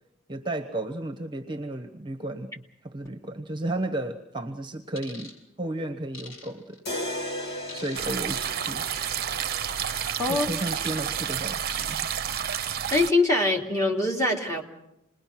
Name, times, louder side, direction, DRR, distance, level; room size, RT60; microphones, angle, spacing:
voice 1, 0.3-6.8 7.7-8.8 10.3-12.1, right 1 dB, 20° right, 6 dB, 1.2 m, -33 dB
sound 1, 5.0-5.3 6.1-6.8 7.7-8.2 8.9-9.1 9.8-10.1 10.6-11.1 11.7-12.1 12.6-12.8, left 3 dB, 70° left, 6.2 m, -44 dB
sound 2, 6.9-10.9, left 1 dB, 55° left, 2.5 m, -37 dB
sound 3, 8.0-13.1, right 9 dB, 45° right, 0.8 m, -30 dB
voice 2, 12.9-14.6, left 2 dB, 15° left, 1 dB, 3.0 m, -23 dB
27.5 x 21.0 x 6.0 m, 0.84 s
head